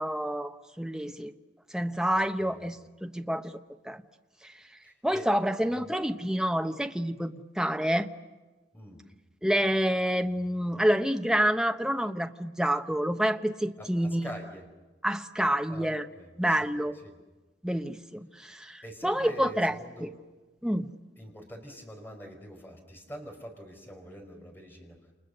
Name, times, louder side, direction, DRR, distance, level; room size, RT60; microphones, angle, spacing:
voice 1, 0.0-1.3 1.7-3.6 3.8-4.0 4.4-4.5 5.0-8.1 9.4-14.3 15.0-16.0 16.4-17.0 17.6-20.1 20.6-20.9, equal, 5° right, 6 dB, 1.1 m, -28 dB
voice 2, 2.1-2.6 4.8-5.3 5.7-6.0 8.7-9.0 13.8-14.6 15.7-16.7 17.0-17.1 18.8-20.1 21.2-25.0, equal, 10° left, 2 dB, 5.2 m, -45 dB
29.5 x 29.5 x 6.8 m, 1.2 s
head